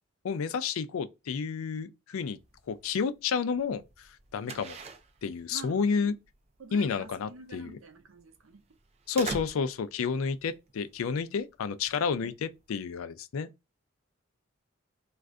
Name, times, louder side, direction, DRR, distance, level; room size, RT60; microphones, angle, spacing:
voice 1, 0.2-2.4 2.7-3.8 4.3-4.8 5.2-6.1 6.7-7.8 9.1-13.5, left 5 dB, 85° left, 0.4 m, -30 dB
sound 1, 2.4-13.0, right 4 dB, 30° right, 0.4 m, -45 dB
voice 2, 5.5-6.1 6.6-8.7 12.2-12.4, right 4 dB, 75° right, 0.6 m, -49 dB
2.5 x 2.4 x 3.2 m
head